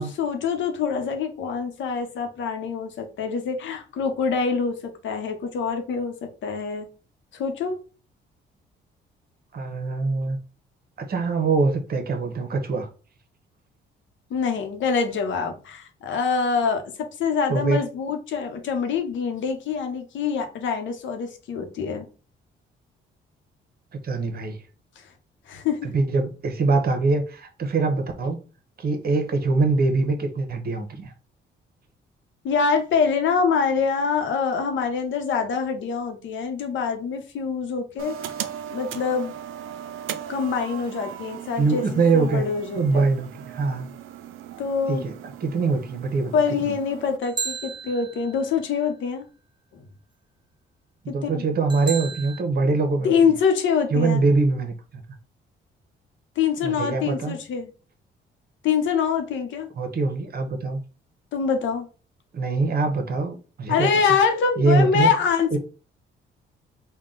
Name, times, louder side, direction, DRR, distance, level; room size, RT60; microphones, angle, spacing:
voice 1, 0.0-6.9 7.3-7.7 14.3-22.1 25.0-25.1 25.5-25.9 32.4-38.3 38.7-39.3 40.3-43.1 44.6-45.0 46.3-49.2 49.7-49.8 51.1-51.4 53.0-54.2 56.4-57.7 58.6-59.7 61.3-61.9 63.7-65.6, left 6 dB, 75° left, 0.8 m, -25 dB
voice 2, 9.5-10.4 11.0-12.9 17.5-17.8 24.0-24.6 25.8-28.4 28.8-31.1 41.6-42.5 42.7-43.9 44.9-45.1 45.4-46.3 46.6-46.7 51.0-53.1 53.9-55.0 56.6-57.4 59.8-60.8 62.3-63.9 64.6-65.1 65.5-65.6, right 3 dB, 50° right, 0.9 m, -23 dB
sound 1, 38.0-47.2, right 10 dB, 80° right, 0.4 m, -38 dB
sound 2, 47.2-48.5 51.7-52.4, right 5 dB, 25° right, 0.5 m, -33 dB
3.7 x 2.3 x 3.7 m
cardioid pair, 90°, 20 cm